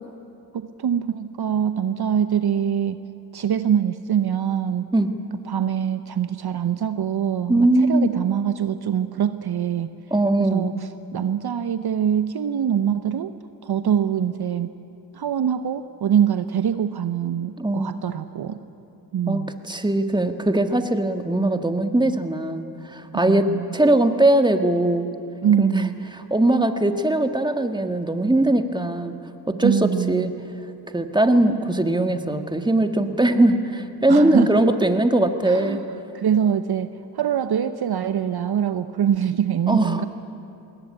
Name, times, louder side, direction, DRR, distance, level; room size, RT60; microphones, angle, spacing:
voice 1, 0.5-3.0 3.3-4.9 5.5-9.9 10.4-10.7 11.1-13.3 13.6-14.7 15.1-18.6 19.1-19.5 23.1-23.8 25.4-26.1 29.6-30.3 34.1-34.8 35.5-35.8 36.1-40.1, right 8 dB, 55° right, 11 dB, 0.9 m, -24 dB
voice 2, 7.5-8.2 10.1-10.7 17.6-18.0 19.3-25.1 25.6-29.1 29.5-30.3 30.9-35.8 39.7-40.1, right 1 dB, 10° right, 7 dB, 1.8 m, -20 dB
21.0 x 18.0 x 9.7 m, 2.7 s
supercardioid pair, 50°, 46 cm